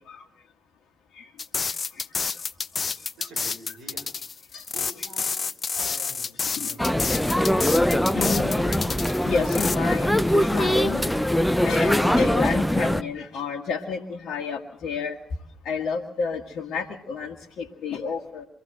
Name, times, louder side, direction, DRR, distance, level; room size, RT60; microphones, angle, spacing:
sound 1, 1.4-9.8, left 5 dB, 40° left, 0.9 m, -29 dB
voice 1, 3.2-4.1 4.7-5.4 5.7-7.0, equal, 70° right, 6 dB, 6.6 m, -46 dB
sound 2, 6.8-13.0, equal, 5° left, 0.9 m, -22 dB
voice 2, 8.1-11.1 11.6-15.2 15.6-18.5, left 5 dB, 65° left, 0 dB, 1.6 m, -30 dB
24.5 x 14.5 x 7.7 m, 0.65 s
hypercardioid pair, 50°, 0 cm